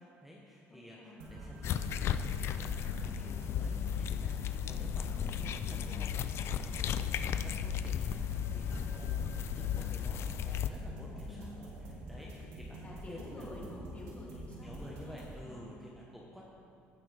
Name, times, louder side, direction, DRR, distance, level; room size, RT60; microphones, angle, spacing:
voice 1, 0.0-13.5 14.6-16.4, equal, 5° right, -4 dB, 1.0 m, -51 dB
voice 2, 0.7-1.3 5.1-5.3 11.1-11.7 12.8-15.8, left 2 dB, 30° left, -4 dB, 2.5 m, -49 dB
sound 1, 1.2-15.3, right 1 dB, 85° right, 1.9 m, -47 dB
sound 2, 1.6-10.7, left 9 dB, 55° left, 0.4 m, -35 dB
16.0 x 6.0 x 3.4 m, 2.5 s
cardioid pair, 115°, 5 cm